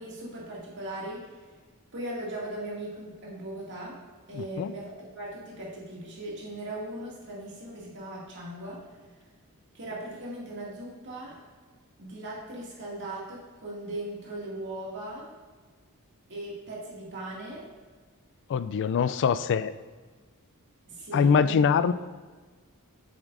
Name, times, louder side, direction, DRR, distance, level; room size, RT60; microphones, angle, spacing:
voice 1, 0.0-1.3 1.9-4.0 4.3-9.1 9.7-11.4 12.0-15.3 16.3-17.7 20.9-21.7, right 1 dB, 55° right, -5 dB, 2.2 m, -38 dB
voice 2, 4.3-4.7 18.5-19.7 21.1-21.9, left 6 dB, 55° left, 14 dB, 0.3 m, -23 dB
8.0 x 7.3 x 2.6 m, 1.4 s
head